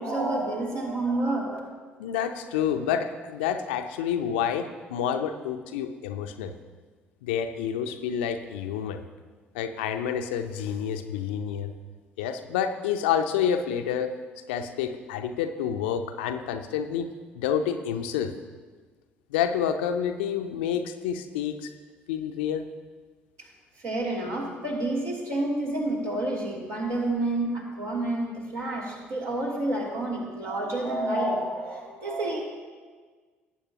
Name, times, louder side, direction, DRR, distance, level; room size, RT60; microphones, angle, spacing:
voice 1, 0.0-1.6 23.8-32.4, right 2 dB, 60° right, -3 dB, 2.8 m, -29 dB
voice 2, 2.0-6.5 7.2-9.0 9.5-11.7 12.2-14.1 14.5-18.3 19.3-21.7 22.1-22.7, left 8 dB, 70° left, 7 dB, 0.6 m, -28 dB
18.5 x 8.6 x 2.9 m, 1.4 s
figure-of-eight pair, 50°, 6 cm